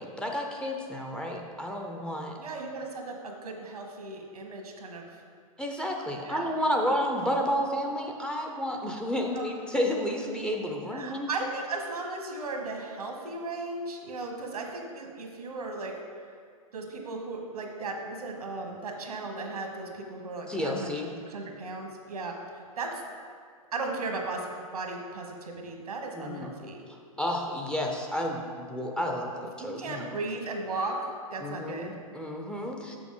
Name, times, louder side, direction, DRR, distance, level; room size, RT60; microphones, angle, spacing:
voice 1, 0.0-2.4 5.6-11.3 20.5-21.1 26.1-26.5 27.2-30.2 31.4-33.0, equal, 5° left, 0 dB, 0.6 m, -31 dB
voice 2, 2.4-5.2 6.2-6.5 9.3-9.5 10.9-15.9 16.7-21.0 21.3-23.0 23.7-26.8 29.6-31.0 31.3-31.9, right 3 dB, 85° right, 2 dB, 1.3 m, -36 dB
6.9 x 6.1 x 3.8 m, 2.1 s
hypercardioid pair, 120°, 19 cm